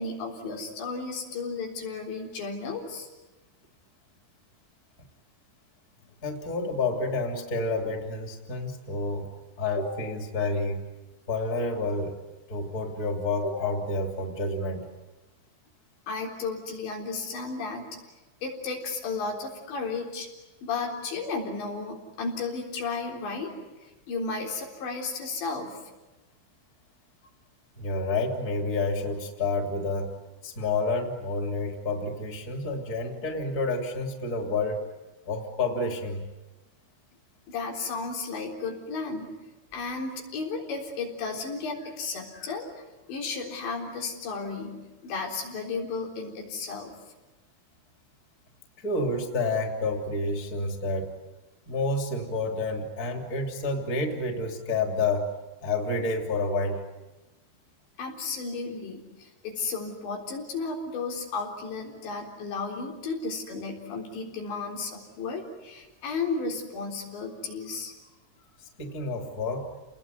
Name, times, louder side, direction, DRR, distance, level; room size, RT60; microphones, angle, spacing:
voice 1, 0.0-3.1 16.1-17.9 18.4-20.3 20.6-23.7 24.1-25.8 37.5-39.3 39.7-46.9 58.0-67.9, left 4 dB, 80° left, 0 dB, 6.1 m, -34 dB
voice 2, 6.2-9.3 9.6-10.8 11.3-12.2 12.5-14.9 27.8-30.1 30.4-34.9 35.2-36.3 48.8-51.1 51.7-55.3 55.6-56.8 68.6-69.7, left 2 dB, 20° left, 3 dB, 2.8 m, -29 dB
29.5 x 20.5 x 9.5 m, 1.1 s
omnidirectional pair, 5.1 m